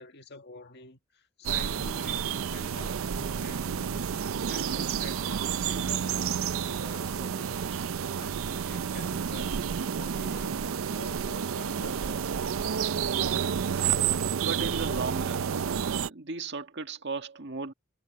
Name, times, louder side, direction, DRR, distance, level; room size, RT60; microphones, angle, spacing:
voice 1, 0.0-4.2 4.5-12.8, left 2 dB, 55° left, 1.9 m, -47 dB
sound 1, 1.4-16.1, right 7 dB, 75° right, 0.5 m, -30 dB
voice 2, 14.4-15.5 16.1-17.7, right 3 dB, 55° right, 1.8 m, -35 dB
head